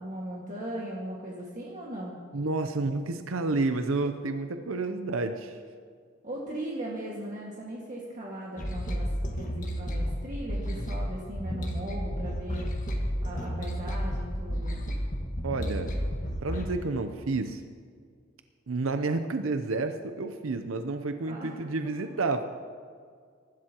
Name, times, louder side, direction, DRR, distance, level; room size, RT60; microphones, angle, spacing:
voice 1, 0.0-2.2 6.2-9.1 9.4-12.7 13.2-14.8 21.2-21.6 22.0-22.1, right 1 dB, 40° right, -4 dB, 1.9 m, -38 dB
voice 2, 2.3-5.6 15.4-15.9 16.4-17.6 18.7-22.4, right 3 dB, 80° right, 8 dB, 0.7 m, -30 dB
sound 1, 8.6-16.7, equal, 40° left, 1.7 m, -32 dB
23.0 x 12.5 x 3.0 m, 2.1 s
head